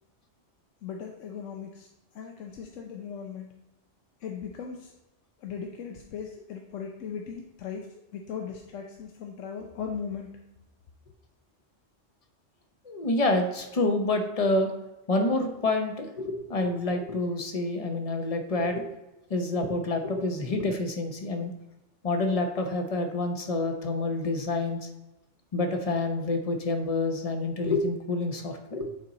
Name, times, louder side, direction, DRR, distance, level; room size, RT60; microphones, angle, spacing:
voice 1, 0.8-1.9 2.1-3.5 4.2-4.9 5.4-7.9 8.1-10.4, left 6 dB, 85° left, 2 dB, 1.0 m, -38 dB
voice 2, 12.8-14.7 15.1-18.9 19.3-21.5 22.0-24.8 25.5-28.9, left 2 dB, 35° left, 4 dB, 0.9 m, -28 dB
9.5 x 4.2 x 4.0 m, 0.95 s
omnidirectional pair, 1.3 m